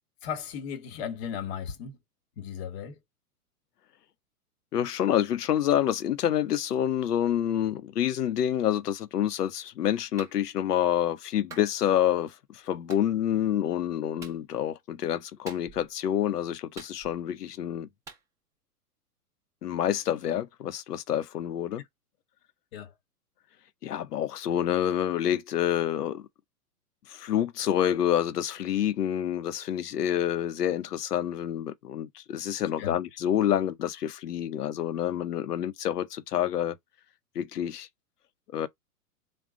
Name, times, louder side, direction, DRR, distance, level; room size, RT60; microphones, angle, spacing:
voice 1, 0.2-2.0 2.4-3.0 22.7-22.9 32.8-33.0, left 8 dB, 40° left, 1.2 m, -36 dB
voice 2, 4.7-12.3 12.7-17.9 19.6-21.8 23.8-26.2 27.1-36.8 37.4-37.9 38.5-38.7, left 10 dB, 75° left, 0.8 m, -28 dB
Clapping, 10.2-10.4 11.5-11.7 12.9-13.1 14.2-14.4 15.5-15.9 16.8-17.3 18.1-18.2, right 4 dB, 5° right, 0.4 m, -46 dB
3.9 x 2.3 x 3.6 m
hypercardioid pair, 115°, 47 cm